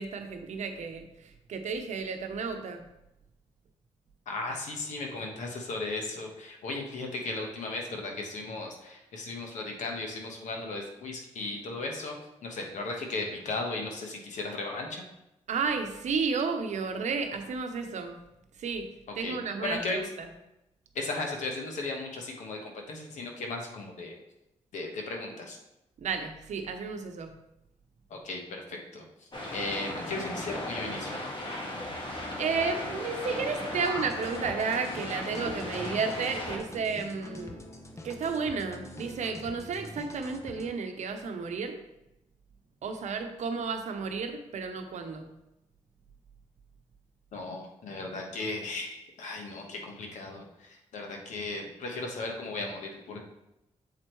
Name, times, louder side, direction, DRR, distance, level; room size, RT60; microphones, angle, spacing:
voice 1, 0.0-2.8 15.5-18.2 18.6-20.3 26.0-27.4 32.4-37.6 38.0-41.8 42.8-45.3, right 5 dB, 70° right, 6 dB, 0.8 m, -32 dB
voice 2, 4.3-12.1 12.4-15.1 19.2-20.0 20.9-24.2 24.7-25.6 28.1-31.2 47.3-53.2, left 2 dB, 80° left, 1 dB, 1.2 m, -36 dB
sound 1, 29.3-36.6, left 1 dB, 40° left, 1.7 m, -36 dB
sound 2, 33.8-40.7, left 1 dB, 25° left, 0.8 m, -45 dB
7.2 x 4.4 x 3.1 m, 0.89 s
cardioid pair, 65°, 12 cm